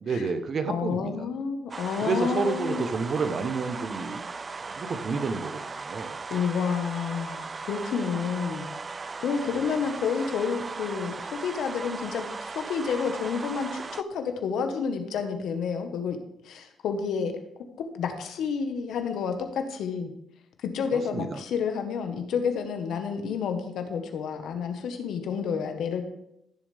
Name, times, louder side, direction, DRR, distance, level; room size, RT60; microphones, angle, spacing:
voice 1, 0.0-1.3 2.0-4.2 4.7-6.2 9.5-9.6 20.9-21.4, right 4 dB, 50° right, 9 dB, 1.0 m, -30 dB
voice 2, 0.7-2.9 6.3-8.7 9.2-16.2 16.4-17.3 17.9-20.1 20.6-26.0, left 6 dB, 75° left, 6 dB, 1.4 m, -30 dB
sound 1, 1.7-14.0, right 4 dB, 30° right, 0.3 m, -37 dB
15.0 x 7.1 x 3.5 m, 0.79 s
cardioid pair, 90°, 0 cm